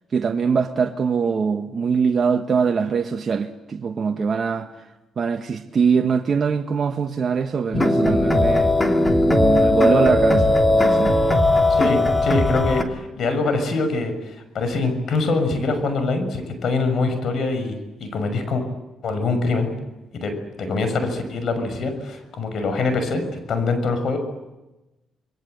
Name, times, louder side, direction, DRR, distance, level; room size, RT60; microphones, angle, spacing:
voice 1, 0.1-4.7 5.2-8.7 9.3-11.1, right 6 dB, 45° right, 1.4 m, -22 dB
sound 1, 7.7-12.8, left 1 dB, 15° left, 2.9 m, -18 dB
voice 2, 11.8-18.6 19.0-19.7 20.1-23.2 23.5-24.2, left 3 dB, 60° left, 6.3 m, -24 dB
27.5 x 22.0 x 8.1 m
cardioid pair, 90°, 0 cm